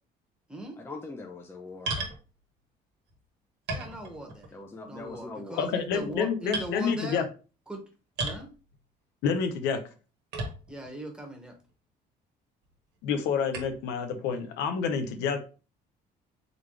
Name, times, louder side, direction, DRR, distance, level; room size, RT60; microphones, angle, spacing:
voice 1, 0.8-2.0 4.5-5.6, left 3 dB, 15° left, 2 dB, 0.6 m, -42 dB
sound 1, 1.9-2.2 3.1-3.2 3.7-4.5 4.9-5.3 5.9-6.1 6.5-6.7 8.2-8.5 10.3-10.9 11.6-11.7 13.5-13.8, right 2 dB, 75° right, 1.3 m, -34 dB
voice 2, 3.7-4.5 4.9-7.2 7.7-7.8 8.2-8.5 10.7-11.5, right 1 dB, 5° right, 1 dB, 1.2 m, -39 dB
voice 3, 5.6-7.2 9.2-9.9 13.0-15.4, left 6 dB, 90° left, 7 dB, 0.7 m, -28 dB
3.9 x 3.4 x 3.2 m, 0.34 s
cardioid pair, 110°, 17 cm